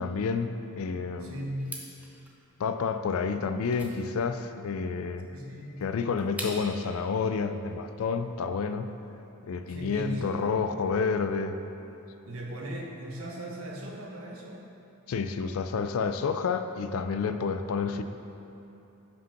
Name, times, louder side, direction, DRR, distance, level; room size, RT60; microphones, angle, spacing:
voice 1, 0.0-1.5 2.6-5.3 5.8-8.9 9.4-11.6 15.1-18.0, left 5 dB, 70° left, 9 dB, 0.4 m, -29 dB
voice 2, 1.2-1.7 5.3-5.8 9.7-10.3 12.2-14.6, equal, 70° right, -1 dB, 1.0 m, -37 dB
sound 1, 1.6-6.9, right 1 dB, 5° right, 0.6 m, -44 dB
5.4 x 5.2 x 5.8 m, 2.9 s
head